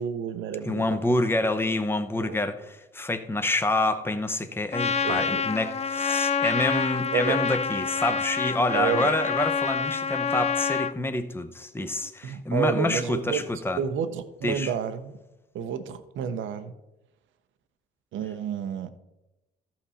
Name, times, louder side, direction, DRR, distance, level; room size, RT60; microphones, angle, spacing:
voice 1, 0.0-1.0 2.1-2.4 5.0-5.4 7.1-7.4 8.7-9.1 12.2-15.2 15.5-16.7 18.1-19.0, right 8 dB, 75° right, 10 dB, 0.8 m, -30 dB
voice 2, 0.7-13.8 14.4-14.7, left 2 dB, 10° left, 9 dB, 0.8 m, -27 dB
Trumpet, 4.7-10.9, left 6 dB, 30° left, 0.4 m, -27 dB
14.0 x 5.8 x 4.2 m, 0.98 s
cardioid pair, 90°, 20 cm